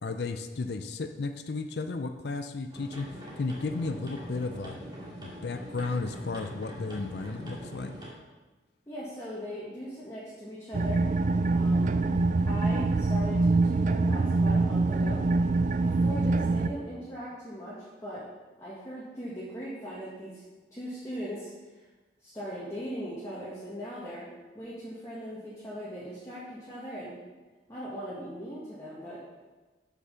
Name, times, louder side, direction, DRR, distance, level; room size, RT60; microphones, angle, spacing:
voice 1, 0.0-3.1 3.4-4.8 5.2-7.9, left 3 dB, 60° left, 8 dB, 0.5 m, -33 dB
sound 1, 2.7-8.1, equal, 25° right, 2.1 m, -43 dB
voice 2, 8.9-11.1 11.5-11.9 12.4-15.3 15.8-18.2 18.6-20.4 20.7-21.5 22.2-24.3 24.5-27.2 27.7-29.2, equal, 20° left, -9 dB, 1.8 m, -39 dB
sound 2, 10.7-16.7, right 3 dB, 45° right, 0.4 m, -25 dB
8.1 x 6.0 x 5.6 m, 1.2 s
head